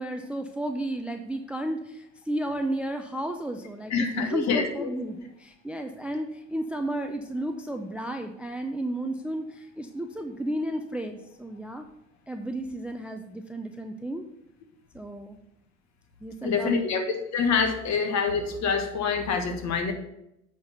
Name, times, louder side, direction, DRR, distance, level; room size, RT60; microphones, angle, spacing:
voice 1, 0.0-11.9 12.3-14.2 14.9-15.4 16.2-16.9, right 1 dB, 5° right, 6 dB, 0.5 m, -33 dB
voice 2, 3.9-4.9 16.4-17.0 17.3-19.9, left 5 dB, 45° left, 5 dB, 1.5 m, -26 dB
8.5 x 4.5 x 5.4 m, 0.82 s
hypercardioid pair, 80°, 40 cm